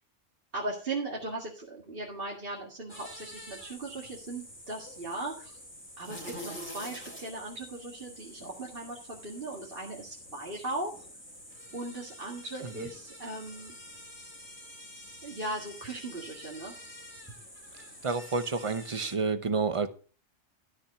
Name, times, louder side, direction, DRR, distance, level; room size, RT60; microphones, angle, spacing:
voice 1, 0.5-5.6 6.0-11.0 11.7-13.7 15.2-16.7, right 2 dB, 45° right, 2.3 m, -38 dB
sound 1, 2.9-19.2, equal, 10° left, 2.9 m, -47 dB
voice 2, 18.0-19.9, right 4 dB, 30° right, 0.8 m, -29 dB
13.5 x 6.0 x 5.7 m
omnidirectional pair, 1.3 m